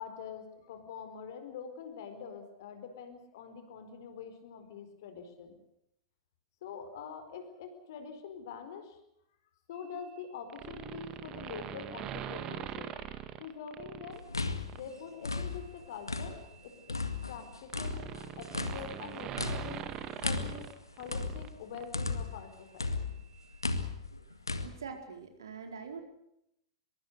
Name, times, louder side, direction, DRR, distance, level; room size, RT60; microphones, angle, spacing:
voice 1, 0.0-5.6 6.6-9.0 9.7-12.9 13.4-14.2 14.7-17.0 17.3-18.0 18.4-19.9 20.2-23.1, left 6 dB, 55° left, 8 dB, 4.6 m, -45 dB
sound 1, 10.5-14.2 14.7-14.9 16.1-21.5 21.7-21.8, right 10 dB, 30° right, 1.9 m, -42 dB
sound 2, 14.1-16.6 16.9-22.5 22.8-24.7, left 3 dB, 80° left, 2.0 m, -36 dB
voice 2, 24.6-26.0, right 5 dB, 65° right, 5 dB, 4.4 m, -44 dB
24.0 x 23.0 x 6.6 m, 0.79 s
figure-of-eight pair, 95°, 2 cm